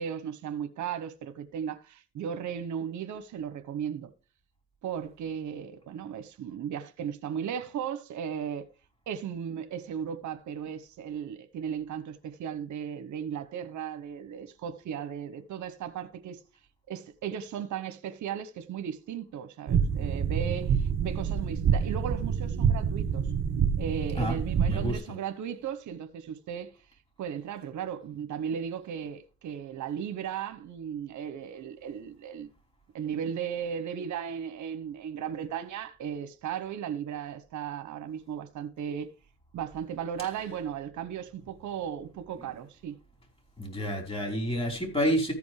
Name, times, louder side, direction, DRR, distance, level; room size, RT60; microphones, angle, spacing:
voice 1, 0.0-4.1 4.8-8.7 9.1-16.4 16.9-23.3 23.8-26.7 27.2-32.5 32.9-39.1 39.5-43.0, right 8 dB, 70° right, 1.1 m, -36 dB
sound 1, 19.7-24.9, right 7 dB, 55° right, 2.3 m, -27 dB
voice 2, 24.7-25.0 43.6-45.3, equal, 20° left, 5.2 m, -29 dB
14.0 x 5.2 x 4.8 m
cardioid pair, 90°, 30 cm